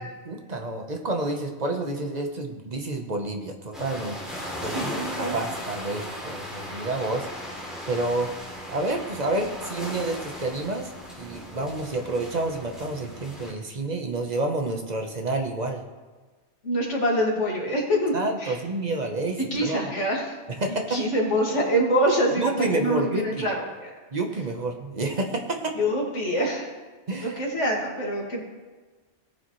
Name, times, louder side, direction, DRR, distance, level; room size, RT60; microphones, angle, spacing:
voice 1, 0.2-4.2 4.6-7.3 7.9-8.3 8.7-10.9 11.2-15.8 18.1-19.8 20.5-21.0 22.4-23.5 24.1-25.8 27.1-27.4, right 2 dB, 40° right, 3 dB, 1.0 m, -29 dB
sound 1, 3.7-13.5, equal, ahead, 2.9 m, -37 dB
voice 2, 4.6-5.3 16.6-18.1 18.4-18.5 19.5-20.3 20.9-23.9 25.8-26.7 27.2-28.4, equal, 80° left, -2 dB, 2.4 m, -25 dB
18.0 x 7.0 x 3.1 m, 1.3 s
omnidirectional pair, 1.2 m